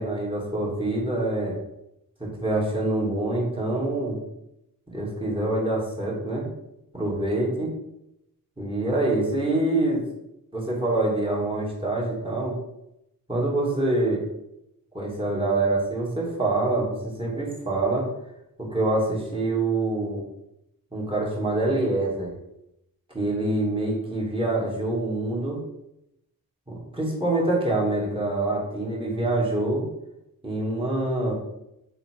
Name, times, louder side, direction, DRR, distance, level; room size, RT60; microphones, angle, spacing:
voice 1, 0.0-1.6 2.2-4.2 4.9-6.5 6.9-7.7 8.6-10.0 10.5-12.6 13.3-14.2 14.9-18.1 18.6-20.2 20.9-22.3 23.1-25.6 26.7-29.8 30.4-31.3, right 2 dB, 15° right, -2 dB, 2.9 m, -25 dB
7.6 x 5.2 x 4.9 m, 0.85 s
wide cardioid pair, 115°, 35 cm